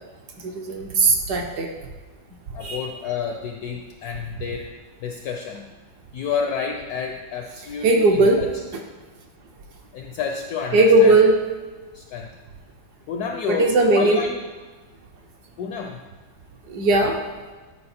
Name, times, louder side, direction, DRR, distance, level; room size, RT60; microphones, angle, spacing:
voice 1, 0.4-1.7 2.6-2.9 7.8-8.4 8.7-8.8 10.7-11.4 13.5-14.2 16.7-17.2, right 2 dB, 65° right, 2 dB, 1.2 m, -18 dB
voice 2, 2.5-4.7 5.0-5.7 6.1-8.5 9.9-11.1 11.9-12.3 13.1-14.4 15.6-16.0, left 6 dB, 75° left, 2 dB, 0.9 m, -29 dB
9.7 x 4.4 x 4.2 m, 1.3 s
omnidirectional pair, 2.1 m